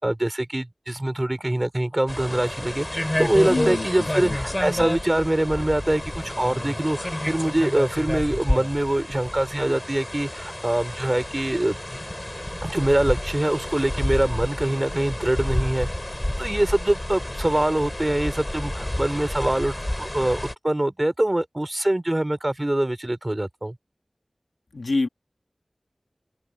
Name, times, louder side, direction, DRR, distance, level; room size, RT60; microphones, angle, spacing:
voice 1, 0.0-11.8 12.6-15.9 16.4-23.8, right 1 dB, 30° right, 4.7 m, -24 dB
sound 1, 2.1-20.5, left 1 dB, 20° left, 8.0 m, -30 dB
voice 2, 3.5-4.4 4.7-4.9 24.7-25.1, left 3 dB, 90° left, 1.7 m, -27 dB
open air
wide cardioid pair, 45°, 0 cm